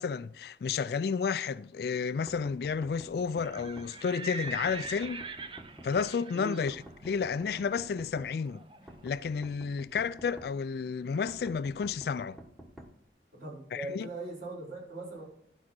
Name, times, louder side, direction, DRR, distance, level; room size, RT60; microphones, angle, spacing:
voice 1, 0.0-5.2 5.8-8.6 9.0-12.4 13.9-14.1, left 5 dB, 60° left, 0.3 m, -31 dB
sound 1, 2.3-3.9 4.5-6.1 6.7-8.3 8.9-10.5 11.3-12.9, right 1 dB, ahead, 1.2 m, -49 dB
Livestock farm animals working animals, 3.3-9.1, right 3 dB, 30° right, 0.6 m, -44 dB
voice 2, 6.3-6.6 13.3-15.2, right 2 dB, 50° right, 5.1 m, -40 dB
11.5 x 4.9 x 6.1 m
head